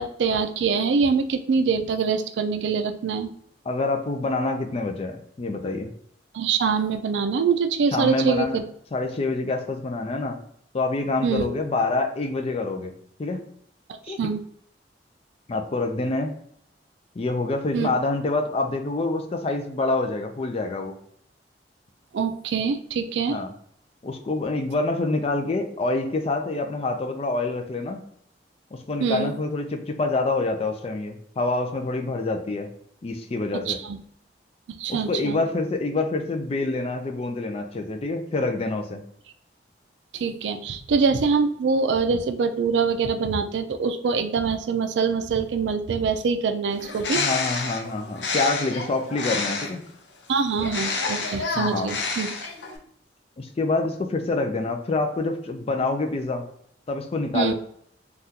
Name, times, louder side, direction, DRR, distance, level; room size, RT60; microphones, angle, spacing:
voice 1, 0.0-3.3 6.3-8.6 11.2-11.5 13.9-14.4 17.7-17.9 22.1-23.4 29.0-29.3 33.7-34.0 34.8-35.4 40.1-47.2 50.3-52.3 57.3-57.5, right 5 dB, 80° right, 9 dB, 0.4 m, -24 dB
voice 2, 3.7-5.9 7.9-8.6 8.9-10.4 10.7-12.9 13.2-13.4 14.1-14.2 15.5-16.3 17.2-21.0 23.3-23.5 24.0-28.0 28.7-32.7 33.0-33.8 34.9-39.0 47.1-49.8 51.5-51.9 53.4-56.5 56.9-57.5, left 2 dB, 35° left, 5 dB, 0.4 m, -26 dB
Bird, 46.7-49.9 50.6-52.8, left 4 dB, 80° left, 0.6 m, -29 dB
3.6 x 2.3 x 2.7 m, 0.68 s
head